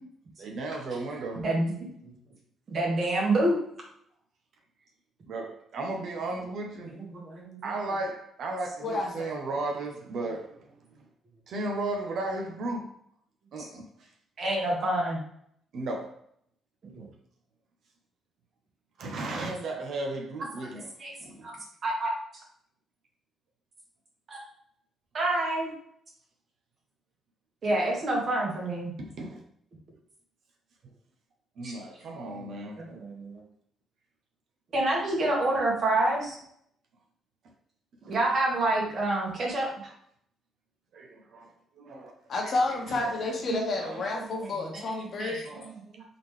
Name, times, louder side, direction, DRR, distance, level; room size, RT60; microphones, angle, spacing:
voice 1, 0.4-1.4 5.3-6.9 7.6-10.7 11.0-11.1 11.5-12.9 13.5-14.1 15.7-16.2 19.0-20.9 21.2-21.5 29.0-29.4 31.6-32.8 38.0-38.2 40.9-42.1 42.9-43.1 43.8-44.1 44.8-44.9 45.4-45.7, right 2 dB, 70° right, 0.9 m, -35 dB
voice 2, 1.3-1.7 2.0-2.1 2.7-3.6 6.9-7.6 14.4-15.2 16.8-17.1 21.0-21.1 21.4-21.5 21.8-22.1 24.3-24.4 25.1-25.7 27.6-28.9 31.6-31.8 32.3-33.4 34.7-36.4 38.1-39.9 43.5-43.6 44.4-44.8 45.2-45.3 45.6-46.0, right 2 dB, 50° right, 1.7 m, -28 dB
voice 3, 8.8-9.4 42.3-45.5, left 2 dB, 55° left, 1.1 m, -30 dB
3.9 x 3.8 x 3.3 m
cardioid pair, 90°, 0 cm